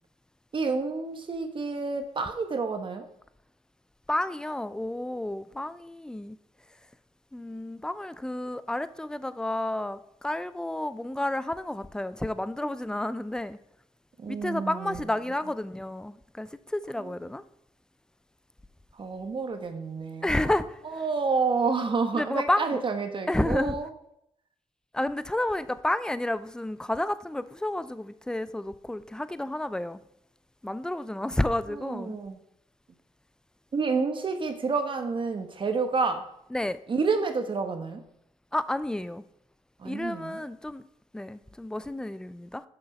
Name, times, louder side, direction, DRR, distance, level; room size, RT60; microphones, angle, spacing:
voice 1, 0.5-3.0 14.2-15.1 17.0-17.1 19.0-20.5 20.8-23.9 31.7-32.4 33.7-36.3 36.9-38.0 39.8-40.4, right 4 dB, 45° right, 1.1 m, -29 dB
voice 2, 4.1-6.4 7.3-13.6 14.3-17.4 20.2-20.7 22.1-22.8 23.3-23.8 24.9-30.0 30.6-32.1 36.5-36.8 38.5-39.2 39.8-40.8 41.1-42.6, left 1 dB, 5° left, 0.4 m, -30 dB
6.8 x 6.0 x 5.4 m
cardioid pair, 80°, 12 cm